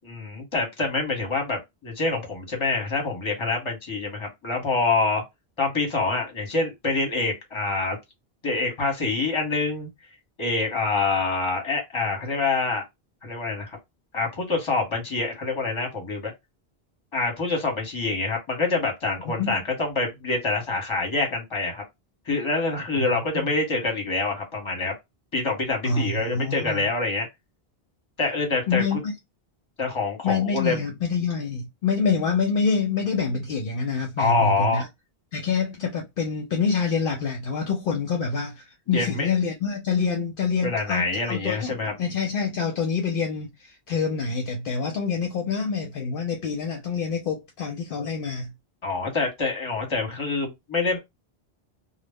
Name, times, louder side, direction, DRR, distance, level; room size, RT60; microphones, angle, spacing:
voice 1, 0.0-5.2 5.6-8.0 8.4-9.9 10.4-12.8 13.2-13.8 14.1-16.3 17.1-21.8 22.3-24.9 25.3-27.3 28.2-29.0 29.8-30.8 34.2-34.9 38.9-39.3 40.6-41.9 48.8-51.0, left 3 dB, 30° left, 0.9 m, -26 dB
voice 2, 25.8-26.9 28.7-29.1 30.2-34.9 35.3-48.5, left 5 dB, 65° left, 0.7 m, -26 dB
2.1 x 2.0 x 3.3 m
omnidirectional pair, 1.0 m